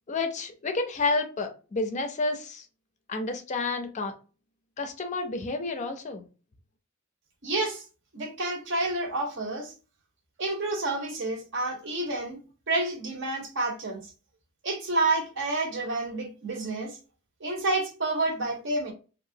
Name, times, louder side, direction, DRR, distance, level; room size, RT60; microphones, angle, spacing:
voice 1, 0.1-2.6 3.1-4.1 4.8-6.2, left 3 dB, 35° left, 0.4 m, -30 dB
voice 2, 7.4-7.8 8.1-9.7 10.4-12.4 12.7-14.1 14.6-17.0 17.4-18.9, right 2 dB, 55° right, 0.8 m, -29 dB
2.9 x 2.4 x 2.7 m
head